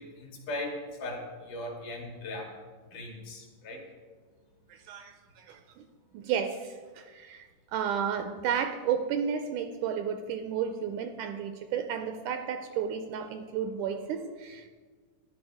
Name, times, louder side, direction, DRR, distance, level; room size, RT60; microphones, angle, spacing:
voice 1, 0.0-2.6 2.9-3.9, left 1 dB, 65° left, 0 dB, 3.8 m, -38 dB
voice 2, 4.7-5.9 6.1-14.7, right 8 dB, 80° right, 8 dB, 1.9 m, -32 dB
12.5 x 11.5 x 4.8 m, 1.5 s
omnidirectional pair, 4.0 m